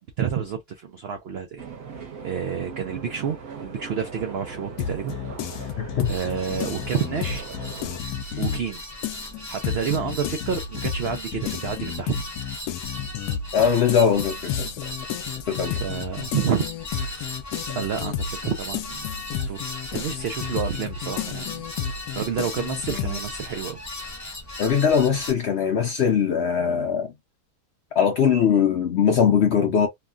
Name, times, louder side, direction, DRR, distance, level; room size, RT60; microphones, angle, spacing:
voice 1, 0.0-1.6 2.2-5.1 5.5-5.8 6.1-7.5 8.4-8.8 9.5-12.1 15.7-16.7 16.9-17.3 17.8-21.6 22.2-23.8, right 7 dB, 80° right, 0.5 m, -29 dB
sound 1, 1.6-8.0, right 5 dB, 65° right, 1.3 m, -39 dB
sound 2, 4.8-8.7 9.0-23.2, left 8 dB, 90° left, 1.1 m, -31 dB
voice 2, 5.8-6.1 13.5-14.8 15.5-15.8 24.6-27.1 27.9-29.9, left 7 dB, 65° left, 0.7 m, -21 dB
sound 3, 6.0-25.3, left 2 dB, 25° left, 0.4 m, -37 dB
3.1 x 2.2 x 2.4 m
omnidirectional pair, 1.6 m